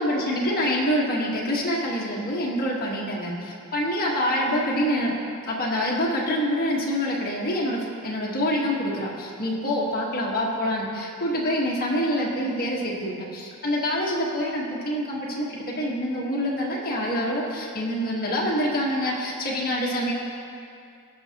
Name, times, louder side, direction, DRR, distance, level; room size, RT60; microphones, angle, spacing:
voice 1, 0.0-5.1 5.5-20.1, equal, 40° left, -4 dB, 1.5 m, -26 dB
16.5 x 6.2 x 2.9 m, 2.5 s
head